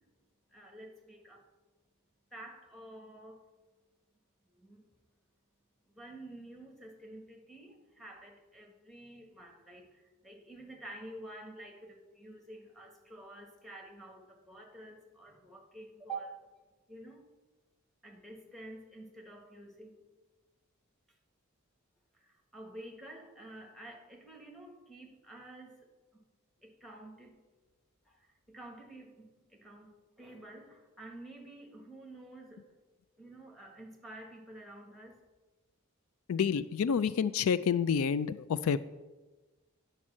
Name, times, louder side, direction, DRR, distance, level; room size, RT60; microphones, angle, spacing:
voice 1, 0.5-1.5 2.3-3.5 4.5-4.8 5.9-16.4 16.9-17.2 18.0-20.0 22.2-25.9 26.1-26.2 26.6-27.4 28.1-32.7 33.2-35.2, right 2 dB, ahead, 2 dB, 1.5 m, -49 dB
voice 2, 36.3-38.8, left 7 dB, 75° left, 15 dB, 0.4 m, -28 dB
10.0 x 5.4 x 7.4 m, 1.2 s
head